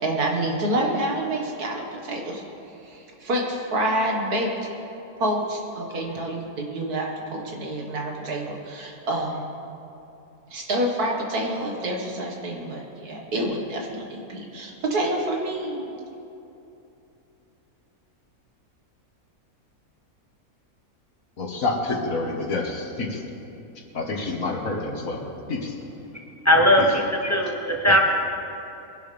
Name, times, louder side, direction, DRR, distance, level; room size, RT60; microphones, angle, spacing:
voice 1, 0.0-2.4 2.8-4.5 5.2-9.4 10.5-15.9, right 1 dB, 90° right, 0 dB, 2.3 m, -27 dB
voice 2, 21.4-23.2 23.9-25.8 26.8-26.9 27.9-28.0, left 3 dB, 65° left, 1 dB, 1.9 m, -28 dB
voice 3, 26.4-28.0, equal, 10° left, 0 dB, 1.1 m, -19 dB
22.0 x 11.0 x 3.5 m, 2.8 s
omnidirectional pair, 1.6 m